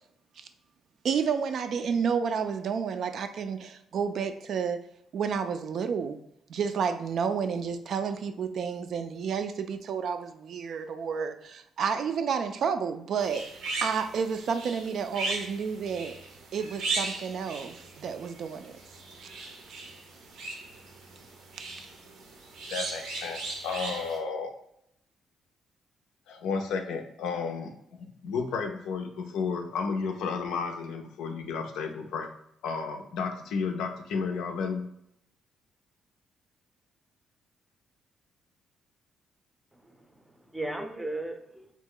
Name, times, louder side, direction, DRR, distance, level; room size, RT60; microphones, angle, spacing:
voice 1, 1.0-4.8 5.1-6.2 6.5-13.5 13.8-16.2 16.5-18.7 19.2-19.3, right 6 dB, 65° right, 8 dB, 0.3 m, -30 dB
sound 1, 13.2-24.2, right 3 dB, 90° right, 0.7 m, -38 dB
voice 2, 22.7-24.5 26.3-27.7 28.0-32.3 32.6-34.9, left 5 dB, 85° left, 4 dB, 0.4 m, -32 dB
voice 3, 39.7-41.7, right 2 dB, 10° right, 4 dB, 0.5 m, -37 dB
2.9 x 2.1 x 3.7 m, 0.73 s
cardioid pair, 90°, 0 cm